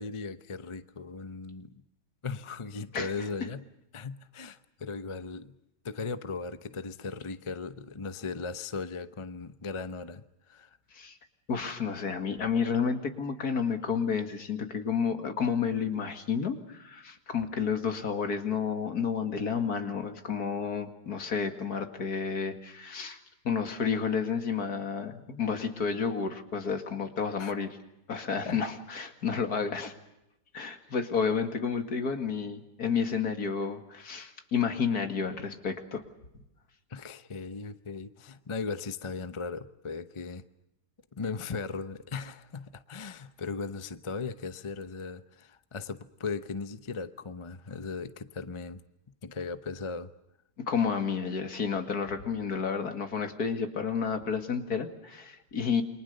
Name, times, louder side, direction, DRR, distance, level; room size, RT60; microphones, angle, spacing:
voice 1, 0.0-1.8 2.2-3.7 3.9-5.6 5.8-10.8 27.4-27.5 28.4-28.6 36.9-40.4 41.1-48.8 49.2-50.1, left 4 dB, 35° left, 0.5 m, -38 dB
voice 2, 11.5-23.2 23.4-27.8 28.1-29.9 30.5-36.0 50.6-55.8, left 6 dB, 55° left, 2.5 m, -31 dB
29.0 x 23.5 x 6.7 m
omnidirectional pair, 2.0 m